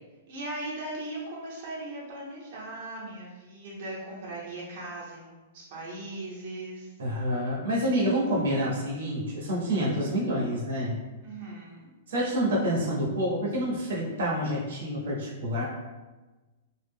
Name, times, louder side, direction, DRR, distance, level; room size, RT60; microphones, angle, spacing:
voice 1, 0.3-6.9 9.6-9.9 11.2-11.9, right 2 dB, 45° right, -6 dB, 0.8 m, -39 dB
voice 2, 7.0-11.0 12.1-15.6, equal, 85° right, -4 dB, 0.8 m, -28 dB
2.3 x 2.0 x 3.5 m, 1.2 s
hypercardioid pair, 160°, 0 cm